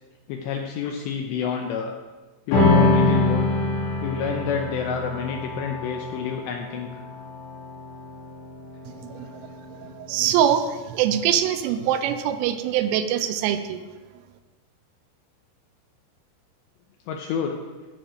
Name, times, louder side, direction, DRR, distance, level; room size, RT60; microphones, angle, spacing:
voice 1, 0.3-1.9 2.5-3.5 4.0-7.0 9.8-9.9 17.1-17.6, left 7 dB, 80° left, 3 dB, 2.5 m, -29 dB
sound 1, 2.5-9.2, left 2 dB, 60° left, 4.1 m, -24 dB
voice 2, 8.9-13.8, right 10 dB, 85° right, 9 dB, 3.1 m, -24 dB
14.5 x 6.2 x 5.2 m, 1.3 s
omnidirectional pair, 5.8 m